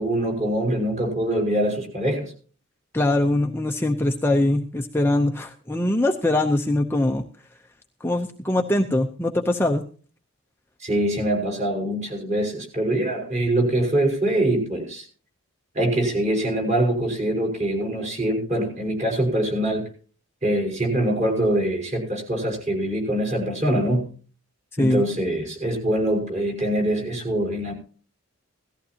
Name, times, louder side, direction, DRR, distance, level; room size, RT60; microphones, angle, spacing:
voice 1, 0.0-2.3 10.8-15.1 15.7-19.9 20.4-24.1 24.8-27.7, right 1 dB, 30° right, 1 dB, 4.9 m, -24 dB
voice 2, 2.9-7.2 8.0-9.8 24.8-25.0, left 1 dB, 10° left, 3 dB, 0.7 m, -22 dB
17.5 x 14.5 x 2.9 m, 0.40 s
head